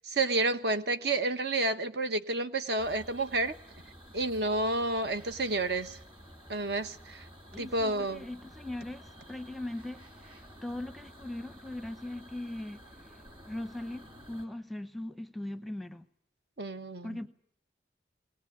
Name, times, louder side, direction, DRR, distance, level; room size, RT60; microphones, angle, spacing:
voice 1, 0.0-3.6 4.1-6.0 6.5-7.2 7.6-8.2 16.6-17.2, right 2 dB, 60° right, 1.1 m, -30 dB
sound 1, 2.8-14.5, equal, 25° right, 2.5 m, -52 dB
voice 2, 7.5-12.8 13.5-16.0 17.0-17.3, left 1 dB, ahead, 0.8 m, -40 dB
20.5 x 19.0 x 8.5 m
head